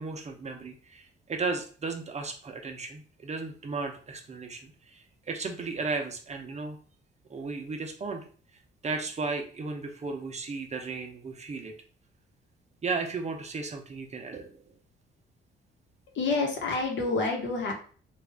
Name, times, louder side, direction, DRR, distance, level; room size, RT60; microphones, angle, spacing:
voice 1, 0.0-6.8 7.3-8.3 8.8-11.7 12.8-14.7, right 4 dB, 35° right, 4 dB, 0.6 m, -35 dB
voice 2, 16.1-17.7, left 3 dB, 65° left, 2 dB, 1.2 m, -28 dB
3.5 x 2.4 x 3.4 m, 0.42 s
cardioid pair, 90°, 20 cm